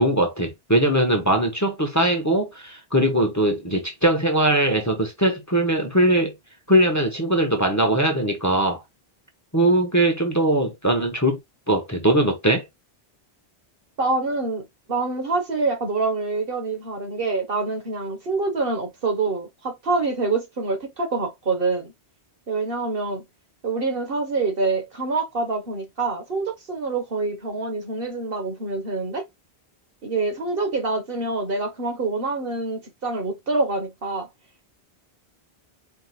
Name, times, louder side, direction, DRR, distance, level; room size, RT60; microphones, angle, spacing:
voice 1, 0.0-6.3 6.7-8.8 9.5-11.4 11.7-12.6, right 1 dB, 15° left, 1.1 m, -20 dB
voice 2, 14.0-14.6 14.9-21.9 22.5-23.2 23.6-29.2 30.0-34.3, right 3 dB, 60° right, 1.6 m, -26 dB
4.5 x 3.7 x 2.4 m
omnidirectional pair, 1.1 m